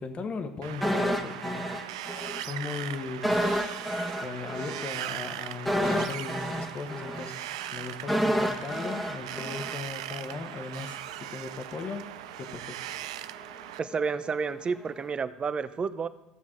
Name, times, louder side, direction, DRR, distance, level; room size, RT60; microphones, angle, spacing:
voice 1, 0.0-1.6 2.4-3.4 4.2-12.1 12.4-12.8, left 4 dB, 40° left, 8 dB, 1.2 m, -37 dB
Wind, 0.6-13.8, right 13 dB, 85° right, 0.3 m, -39 dB
sound 1, 0.8-2.4 2.7-2.8 3.2-10.3 10.6-10.7, equal, ahead, 1.2 m, -30 dB
voice 2, 13.8-16.1, right 5 dB, 35° right, 13 dB, 0.7 m, -30 dB
15.0 x 7.1 x 3.8 m, 0.99 s
hypercardioid pair, 75°, 3 cm